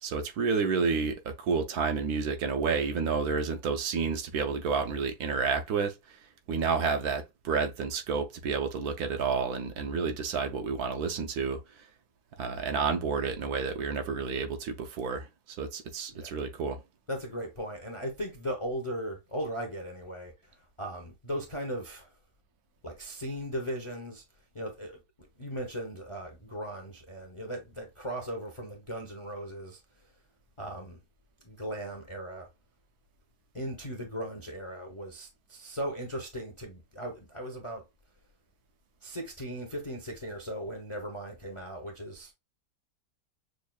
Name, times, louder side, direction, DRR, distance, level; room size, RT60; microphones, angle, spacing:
voice 1, 0.0-5.9 6.5-11.6 12.4-16.8, right 5 dB, 70° right, 1.1 m, -30 dB
voice 2, 17.1-22.1 22.8-24.2 24.5-25.0 25.4-30.1 30.6-31.0 31.4-32.5 33.5-37.8 39.0-42.3, equal, 35° left, 0.5 m, -38 dB
6.3 x 2.3 x 2.3 m
omnidirectional pair, 1.8 m